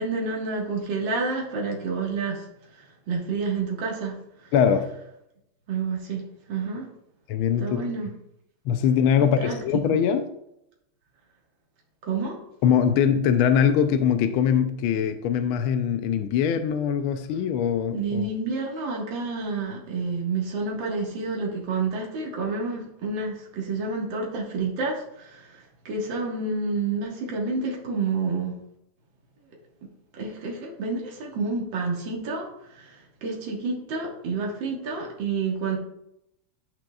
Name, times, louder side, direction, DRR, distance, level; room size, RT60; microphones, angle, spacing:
voice 1, 0.0-2.5 2.7-4.5 5.7-6.9 7.6-8.1 9.2-9.6 9.9-10.0 12.0-12.4 17.9-28.5 30.1-35.8, right 4 dB, 60° right, -2 dB, 2.3 m, -29 dB
voice 2, 4.5-4.9 7.3-7.9 8.7-10.3 12.6-18.3, left 8 dB, 75° left, 8 dB, 1.4 m, -22 dB
12.5 x 5.9 x 2.3 m, 0.79 s
omnidirectional pair, 2.4 m